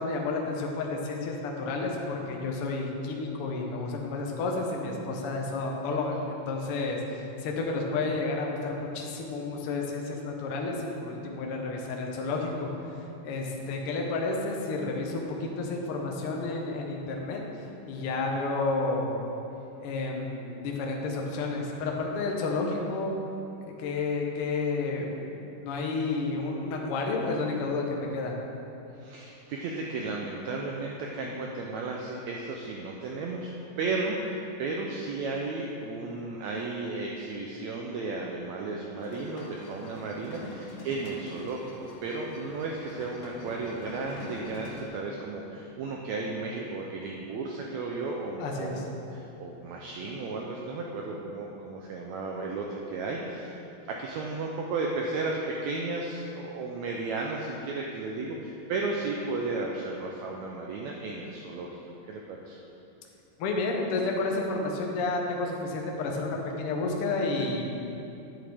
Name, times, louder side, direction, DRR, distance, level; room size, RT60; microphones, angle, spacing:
voice 1, 0.0-12.7 13.2-17.4 17.9-19.1 19.8-23.1 23.8-25.1 25.6-28.3 48.4-48.8 63.4-67.6, left 3 dB, 90° left, 0 dB, 1.2 m, -31 dB
voice 2, 28.9-33.5 33.8-53.6 53.9-61.8 62.1-62.6, right 3 dB, 90° right, -1 dB, 1.6 m, -34 dB
sound 1, 39.0-44.9, left 2 dB, 70° left, 2.4 m, -45 dB
9.6 x 8.3 x 3.5 m, 2.8 s
omnidirectional pair, 4.0 m